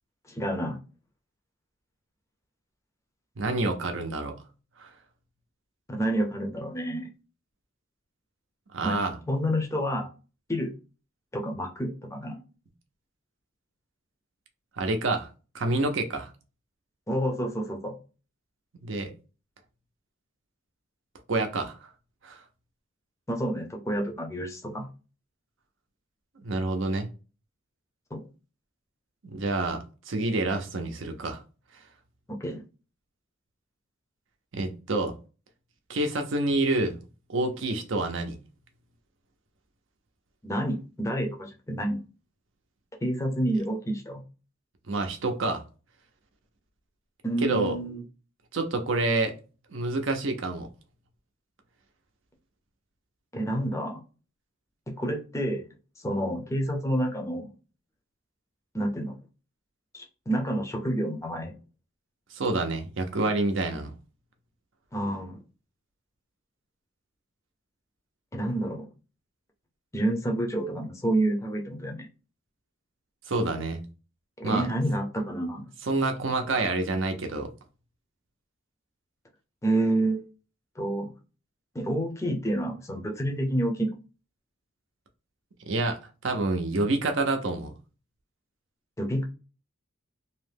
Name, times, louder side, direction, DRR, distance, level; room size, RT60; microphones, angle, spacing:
voice 1, 0.3-0.8 5.9-7.1 8.8-9.0 9.3-10.1 10.5-10.7 11.3-12.4 17.1-18.0 23.3-24.9 28.1-28.2 32.3-32.6 40.4-42.0 43.0-44.2 47.2-48.0 53.3-54.0 55.0-55.7 56.0-57.5 58.7-59.2 59.9-61.5 64.9-65.4 68.3-68.9 69.9-72.1 74.4-75.7 79.6-80.3 80.8-81.1 81.7-83.9 89.0-89.2, right 1 dB, 15° left, 0.5 m, -29 dB
voice 2, 3.4-4.4 4.8-4.9 8.7-9.2 14.8-15.3 15.5-16.3 18.8-19.1 21.3-21.8 22.2-22.4 26.4-27.1 29.2-31.4 34.5-35.1 35.9-37.0 37.3-38.4 44.9-45.6 47.4-47.8 48.5-49.4 49.7-50.7 62.3-63.9 73.3-73.8 74.4-74.7 75.8-77.5 85.7-87.7, right 2 dB, 65° right, 0.6 m, -28 dB
2.8 x 2.1 x 3.2 m
head